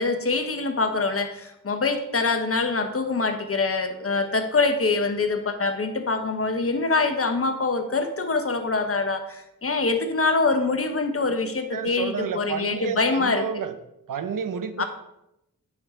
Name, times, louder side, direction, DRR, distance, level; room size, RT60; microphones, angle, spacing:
voice 1, 0.0-13.4 14.8-14.9, left 3 dB, 40° left, 7 dB, 1.1 m, -24 dB
voice 2, 11.7-13.8 14.1-14.8, right 6 dB, 65° right, 11 dB, 0.7 m, -30 dB
9.6 x 4.7 x 3.7 m, 0.84 s
cardioid pair, 55°, 34 cm